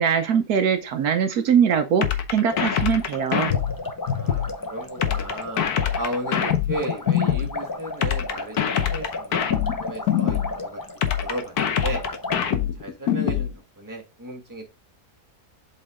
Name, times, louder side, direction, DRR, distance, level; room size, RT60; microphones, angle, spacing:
voice 1, 0.0-3.5, right 7 dB, 70° right, 7 dB, 1.3 m, -22 dB
sound 1, 2.0-4.5 5.0-7.5 8.0-10.5 11.0-13.5, left 9 dB, 75° left, 1.4 m, -23 dB
sound 2, 2.5-12.4, left 2 dB, 35° left, 0.3 m, -34 dB
voice 2, 4.0-5.6 5.9-10.8 11.2-12.0 12.4-13.5 13.8-14.6, right 1 dB, 10° right, 2 dB, 1.5 m, -34 dB
7.8 x 3.9 x 3.6 m, 0.26 s
omnidirectional pair, 1.7 m